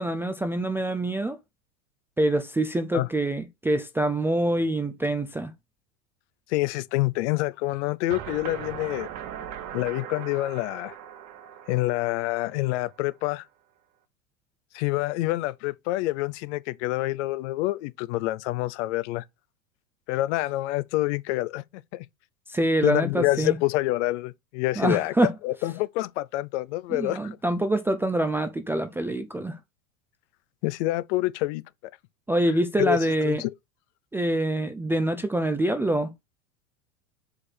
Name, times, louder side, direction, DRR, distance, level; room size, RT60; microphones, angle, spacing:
voice 1, 0.0-1.4 2.2-5.5 22.5-23.6 24.8-25.3 26.9-29.6 32.3-33.4 34.1-36.1, right 1 dB, 5° right, 0.4 m, -25 dB
voice 2, 6.5-9.1 9.7-10.9 11.7-13.4 14.7-19.2 20.1-21.6 21.9-22.1 22.8-25.1 25.4-27.4 30.6-31.6 32.8-33.0 33.2-33.5, left 18 dB, 55° left, 0.6 m, -27 dB
sound 1, 8.1-13.0, right 10 dB, 45° right, 1.3 m, -40 dB
4.9 x 4.8 x 4.3 m
hypercardioid pair, 100°, 42 cm